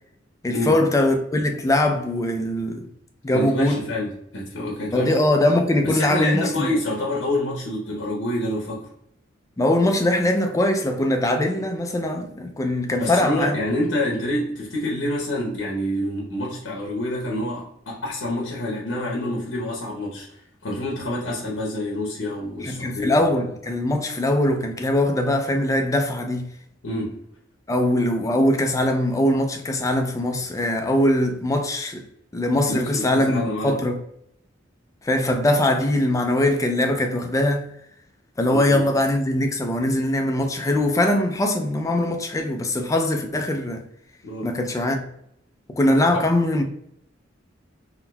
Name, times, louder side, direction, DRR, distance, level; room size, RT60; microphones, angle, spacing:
voice 1, 0.4-2.9 3.2-3.8 4.9-6.7 9.6-13.6 22.6-26.5 27.7-32.0 32.3-34.0 35.0-37.7 38.4-43.8 44.4-45.1 45.7-46.6, left 1 dB, 15° left, 0.4 m, -21 dB
voice 2, 3.3-5.1 5.8-8.9 13.0-23.2 26.8-27.2 32.7-33.8 38.5-38.8 44.2-44.5 46.1-46.2, left 1 dB, 75° left, 0.8 m, -27 dB
3.7 x 2.7 x 2.2 m
head